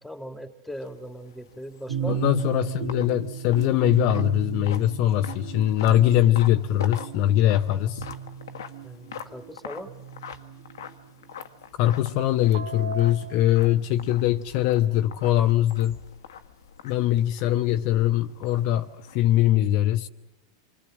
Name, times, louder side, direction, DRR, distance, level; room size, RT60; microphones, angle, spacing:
voice 1, 0.0-2.2 8.8-9.9, equal, ahead, 2.5 m, -39 dB
sound 1, 0.7-19.5, left 7 dB, 75° left, 1.5 m, -44 dB
sound 2, 1.9-11.0 11.9-13.8, right 8 dB, 70° right, 2.0 m, -35 dB
voice 2, 2.1-8.1 11.8-16.0 16.8-20.1, left 13 dB, 50° left, 1.0 m, -22 dB
27.0 x 25.0 x 7.6 m
hypercardioid pair, 100°, 2 cm